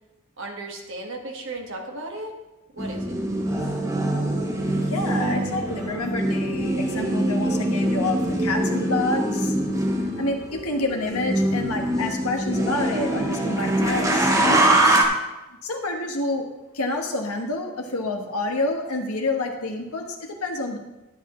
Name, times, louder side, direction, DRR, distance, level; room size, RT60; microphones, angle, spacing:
voice 1, 0.4-2.3 2.7-3.1, right 2 dB, 60° right, 1 dB, 1.6 m, -35 dB
sound 1, 2.8-15.0, right 1 dB, 15° right, 0.9 m, -23 dB
voice 2, 4.9-9.5 10.2-15.0 15.6-16.4 16.7-20.8, left 2 dB, 85° left, 2 dB, 1.4 m, -28 dB
11.5 x 8.3 x 3.1 m, 1.0 s
head